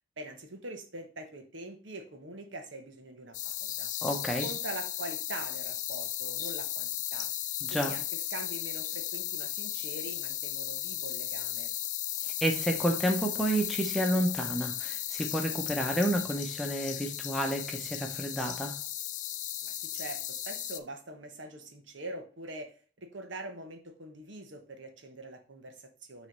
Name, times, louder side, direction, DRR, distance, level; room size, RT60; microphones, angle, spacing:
voice 1, 0.2-3.9 4.4-7.3 7.7-11.7 19.6-22.7 23.0-26.3, right 2 dB, 85° right, 5 dB, 1.2 m, -43 dB
sound 1, 3.3-20.8, left 13 dB, 40° left, 0.4 m, -35 dB
voice 2, 4.0-4.5 7.6-7.9 12.4-18.7, right 1 dB, ahead, 2 dB, 0.9 m, -30 dB
6.3 x 3.2 x 5.3 m, 0.41 s
head